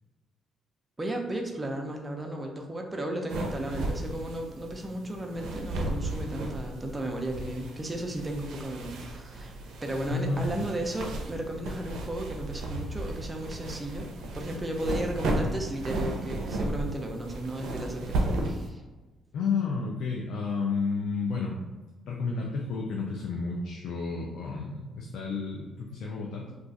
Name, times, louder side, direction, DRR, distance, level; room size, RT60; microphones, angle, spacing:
voice 1, 1.0-9.5 9.8-14.1 14.3-18.8, right 1 dB, 20° right, 2 dB, 0.5 m, -34 dB
sound 1, 3.3-18.7, right 1 dB, 80° right, 0.5 m, -34 dB
voice 2, 10.1-10.7 19.3-21.6 22.0-26.6, left 4 dB, 75° left, -1 dB, 0.4 m, -31 dB
2.4 x 2.3 x 3.9 m, 1.2 s
cardioid pair, 90°, 0 cm